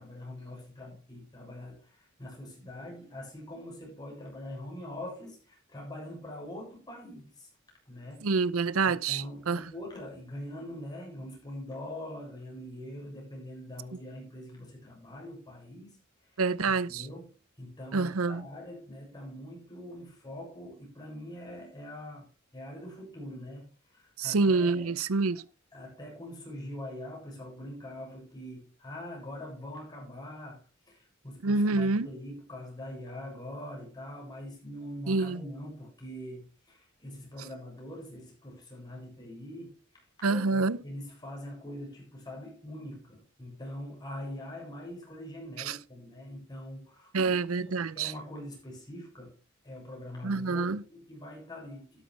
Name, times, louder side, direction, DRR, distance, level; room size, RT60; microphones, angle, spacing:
voice 1, 0.0-7.5 7.9-8.3 8.8-16.0 16.3-16.4 16.9-25.0 25.7-39.8 40.3-47.3 47.7-49.4 49.6-52.0, left 1 dB, 20° left, 7.3 m, -43 dB
voice 2, 8.2-9.6 16.4-17.1 17.9-18.4 24.2-25.4 31.4-32.1 35.1-35.4 40.2-40.8 45.7-45.8 47.1-48.1 50.2-50.8, right 4 dB, 90° right, 0.7 m, -27 dB
12.0 x 11.5 x 3.4 m
head